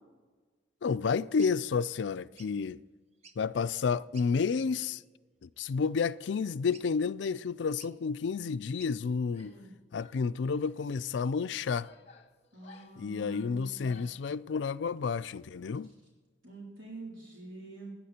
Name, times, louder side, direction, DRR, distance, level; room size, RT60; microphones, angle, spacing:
voice 1, 0.8-2.8 3.4-5.0 5.4-9.5 9.9-11.9 13.0-15.9, left 5 dB, 70° left, 0.4 m, -30 dB
sound 1, 1.4-1.5 2.4-2.6 3.1-3.5 4.1-4.3 4.9-5.1 6.7-7.1 7.8-8.0 8.8-9.0, right 5 dB, 35° right, 0.7 m, -56 dB
Female speech woman speaking / Yell, 9.3-9.7 10.0-10.8 11.5-14.3, left 4 dB, 35° left, 1.0 m, -58 dB
voice 2, 9.4-9.7 12.5-14.1 15.8-15.9 16.4-18.0, right 2 dB, 90° right, 3.8 m, -46 dB
17.5 x 10.0 x 4.3 m
head